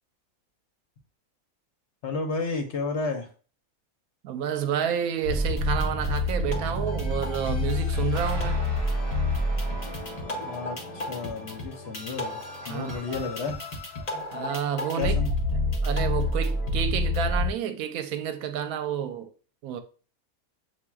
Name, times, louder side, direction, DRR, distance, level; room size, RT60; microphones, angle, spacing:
voice 1, 2.0-3.3 10.4-12.4 12.7-13.6 14.9-15.3, left 4 dB, 60° left, 0.9 m, -32 dB
voice 2, 4.2-8.6 12.7-13.3 14.3-15.1 15.8-19.3 19.6-19.8, right 9 dB, 85° right, 1.0 m, -30 dB
sound 1, 5.2-17.5, left 2 dB, 35° left, 0.7 m, -28 dB
sound 2, 8.1-13.3, right 2 dB, 40° right, 0.4 m, -44 dB
7.2 x 2.5 x 2.3 m
omnidirectional pair, 1.5 m